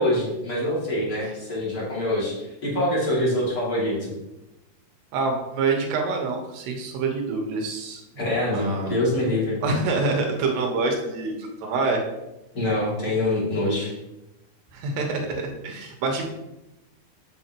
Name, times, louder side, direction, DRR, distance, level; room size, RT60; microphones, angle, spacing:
voice 1, 0.0-4.1 8.2-9.6 12.5-13.9, left 1 dB, 25° left, -6 dB, 2.4 m, -25 dB
voice 2, 5.1-8.2 8.5-9.0 9.6-12.0 14.7-16.3, right 3 dB, 85° right, 1 dB, 3.4 m, -26 dB
8.6 x 7.6 x 3.0 m, 0.95 s
omnidirectional pair, 4.7 m